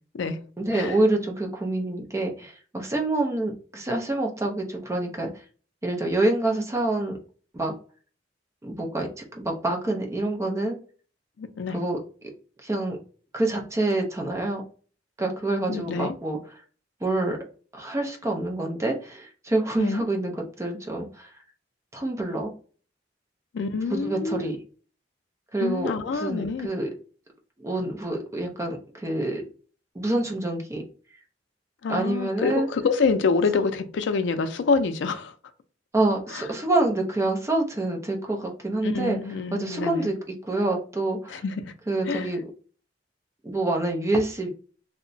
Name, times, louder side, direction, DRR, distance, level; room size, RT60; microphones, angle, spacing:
voice 1, 0.6-5.3 5.8-7.1 7.5-7.7 8.6-10.8 11.7-12.0 12.6-13.0 13.3-14.6 15.2-16.4 17.0-17.4 17.7-21.3 21.9-22.5 23.9-24.6 25.5-26.9 27.6-29.4 29.9-30.8 31.9-32.7 35.9-39.2 39.5-41.4 41.9-42.4 43.4-44.5, right 2 dB, 15° right, 0.5 m, -27 dB
voice 2, 11.4-11.8 15.7-16.1 19.8-20.0 23.5-24.5 25.6-26.7 31.8-35.3 36.3-36.4 38.8-40.1 41.3-41.7 42.1-42.3, left 4 dB, 75° left, 0.4 m, -26 dB
2.8 x 2.1 x 2.6 m
head